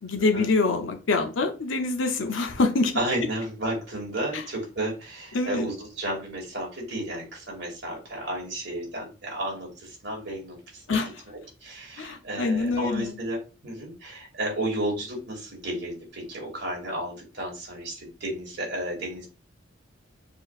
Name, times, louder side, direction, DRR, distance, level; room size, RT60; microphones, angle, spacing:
voice 1, 0.0-2.9 4.3-4.4 5.3-5.7 10.9-11.1 12.0-13.1, left 3 dB, 85° left, 0.7 m, -25 dB
voice 2, 2.9-19.3, right 1 dB, 60° right, 2.3 m, -33 dB
6.6 x 3.0 x 2.4 m
head